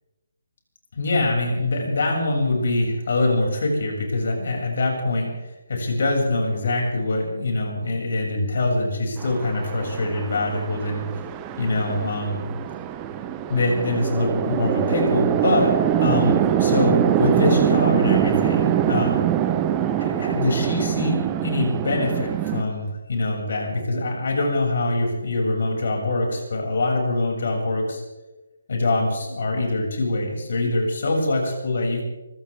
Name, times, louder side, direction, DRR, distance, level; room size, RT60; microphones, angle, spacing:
voice 1, 0.9-11.0 11.6-12.5 13.5-15.7 16.0-19.2 20.0-28.0 28.7-32.0, left 2 dB, 60° left, 0 dB, 6.9 m, -24 dB
Chatter / Traffic noise roadway noise / Train, 9.2-22.6, right 10 dB, 20° right, 1.1 m, -23 dB
25.0 x 16.0 x 3.7 m, 1.1 s
figure-of-eight pair, 145°, 0 cm